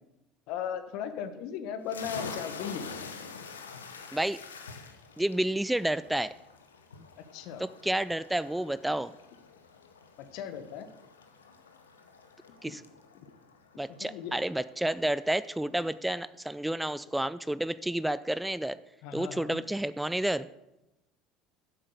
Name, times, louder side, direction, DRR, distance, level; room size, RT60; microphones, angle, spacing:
voice 1, 0.5-2.9 7.2-7.7 10.2-10.9 12.7-12.8 13.1-13.3 14.0-14.4 19.0-19.6, left 8 dB, 65° left, 10 dB, 1.1 m, -37 dB
sound 1, 1.9-15.2, left 5 dB, 85° left, 0.8 m, -46 dB
voice 2, 5.2-6.3 7.6-9.1 12.6-12.8 13.8-18.8 19.1-20.5, right 1 dB, 5° right, 15 dB, 0.4 m, -30 dB
8.1 x 7.7 x 6.5 m, 0.93 s
hypercardioid pair, 65°, 0 cm